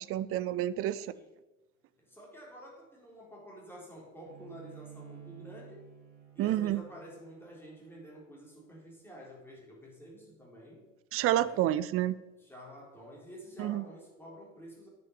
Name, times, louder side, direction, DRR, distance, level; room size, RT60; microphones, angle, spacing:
voice 1, 0.0-1.1 6.4-6.8 11.1-12.1 13.6-13.8, right 13 dB, 35° right, 16 dB, 0.5 m, -29 dB
voice 2, 2.0-5.9 6.3-10.9 11.4-11.7 12.4-14.9, equal, 5° left, -3 dB, 4.0 m, -49 dB
Bowed string instrument, 4.2-9.5, right 8 dB, 60° right, 2.2 m, -53 dB
9.3 x 5.9 x 6.8 m, 1.1 s
figure-of-eight pair, 60°, 39 cm